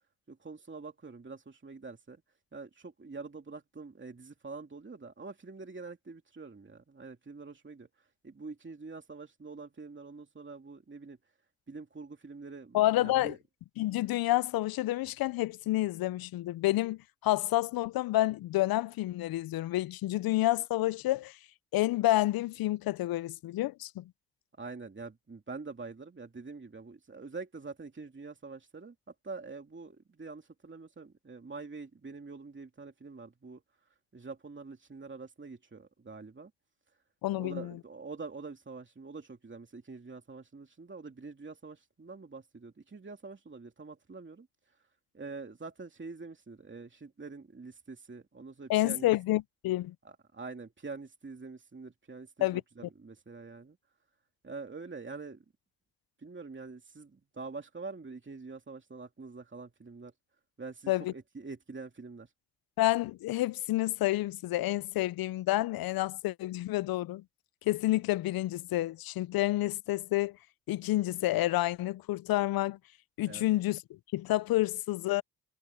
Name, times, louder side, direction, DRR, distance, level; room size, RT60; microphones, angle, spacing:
voice 1, 0.3-2.2 2.5-11.2 11.7-13.4 24.6-33.6 34.1-36.5 37.3-44.9 45.1-49.1 50.0-52.5 52.8-53.8 54.4-55.4 56.2-60.1 60.6-62.3 73.2-73.4, right 4 dB, 30° right, 2.8 m, -45 dB
voice 2, 12.7-13.4 13.8-21.4 21.7-24.0 37.2-37.7 48.7-49.9 52.4-52.6 60.9-61.1 62.8-67.2 67.7-70.4 70.7-72.8 73.2-73.8 74.1-75.2, left 16 dB, 75° left, 0.6 m, -29 dB
supercardioid pair, 50°, 36 cm